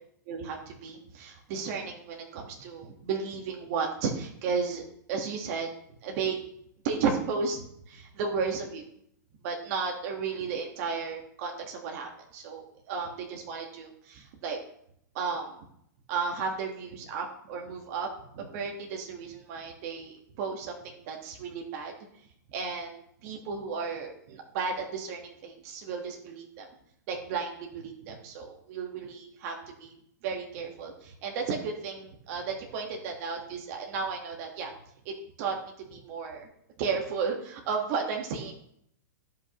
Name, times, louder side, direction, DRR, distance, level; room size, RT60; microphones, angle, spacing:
voice 1, 0.3-4.8 5.1-5.7 6.0-6.4 6.8-8.8 9.4-14.6 15.1-15.5 16.1-18.1 18.3-21.9 22.5-26.7 27.1-29.5 29.8-30.0 30.2-34.7 35.0-36.5 36.8-38.5, right 5 dB, 50° right, 1 dB, 1.4 m, -34 dB
14.0 x 5.5 x 3.0 m, 0.72 s
hypercardioid pair, 130°, 10 cm